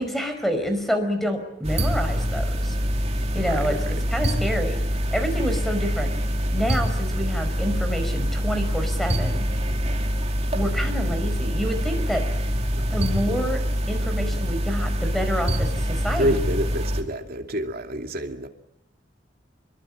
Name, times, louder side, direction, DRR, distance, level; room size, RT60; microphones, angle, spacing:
voice 1, 0.0-2.8 3.3-3.8 4.1-4.8 5.1-6.1 6.5-9.4 10.5-12.2 12.9-13.6 13.9-16.4, equal, ahead, 5.2 m, -28 dB
sound 1, 1.6-17.0, equal, 35° right, 2.9 m, -25 dB
voice 2, 3.4-4.0 12.7-12.9 13.3-13.5 16.1-18.5, equal, 55° right, 2.6 m, -28 dB
25.5 x 22.0 x 8.8 m
head